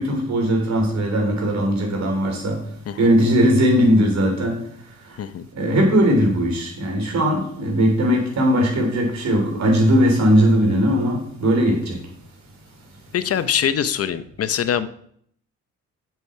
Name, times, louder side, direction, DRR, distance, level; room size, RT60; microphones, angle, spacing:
voice 1, 0.0-2.6 3.0-4.6 5.6-12.0, equal, 65° right, 3.6 m, -19 dB
voice 2, 13.1-14.9, left 9 dB, 50° left, 0.7 m, -23 dB
7.8 x 7.3 x 5.7 m
cardioid pair, 90°, 30 cm